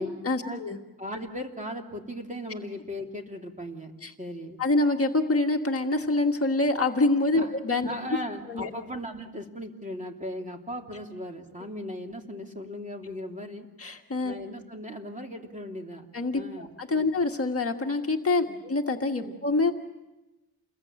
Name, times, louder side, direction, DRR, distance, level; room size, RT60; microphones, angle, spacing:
voice 1, 0.2-0.8 4.0-4.1 4.6-7.9 8.5-8.7 13.8-14.3 16.1-19.7, left 2 dB, 40° left, 3 dB, 1.6 m, -26 dB
voice 2, 1.0-3.9 4.2-4.6 7.3-7.5 7.8-13.7 14.2-16.1 16.3-17.1 18.5-18.6 19.2-19.3, left 1 dB, 20° right, 2 dB, 3.1 m, -37 dB
29.0 x 22.0 x 8.8 m, 1.0 s
wide cardioid pair, 115°, 37 cm